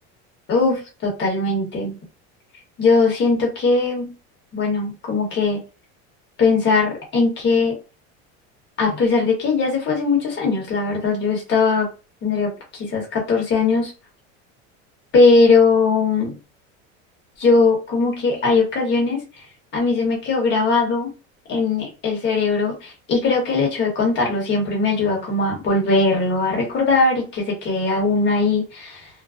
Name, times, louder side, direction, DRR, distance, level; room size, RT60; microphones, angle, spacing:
voice 1, 0.5-2.0 2.8-4.1 4.5-5.6 6.4-7.8 8.8-11.9 12.2-13.9 15.1-16.3 17.4-19.2 19.7-21.1 21.5-29.1, left 4 dB, 30° left, 0 dB, 1.1 m, -19 dB
2.4 x 2.2 x 2.3 m, 0.31 s
cardioid pair, 145°, 34 cm